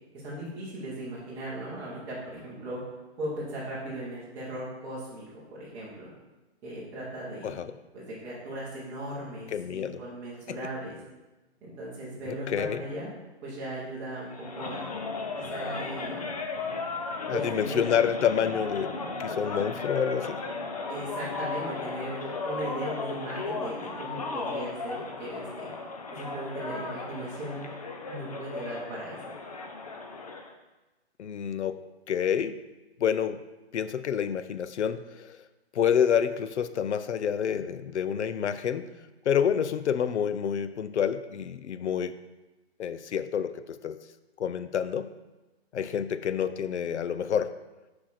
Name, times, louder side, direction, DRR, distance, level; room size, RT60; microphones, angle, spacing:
voice 1, 0.1-2.8 3.2-6.1 6.6-7.6 7.9-11.0 11.6-13.1 13.4-14.8 15.4-16.3 17.3-17.8 20.9-25.7 26.1-27.7 28.1-29.2, right 1 dB, 5° right, -8 dB, 0.9 m, -38 dB
voice 2, 9.5-10.0 10.5-10.6 12.3-12.8 17.3-20.4 31.2-31.8 32.1-32.6 33.0-33.4 33.7-35.4 35.7-38.9 39.3-42.2 42.8-44.0 44.4-45.1 45.7-47.5, left 8 dB, 85° left, 12 dB, 0.6 m, -28 dB
sound 1, 14.3-30.5, left 3 dB, 35° left, 0.5 m, -35 dB
6.3 x 4.8 x 4.1 m, 1.1 s
hypercardioid pair, 170°, 34 cm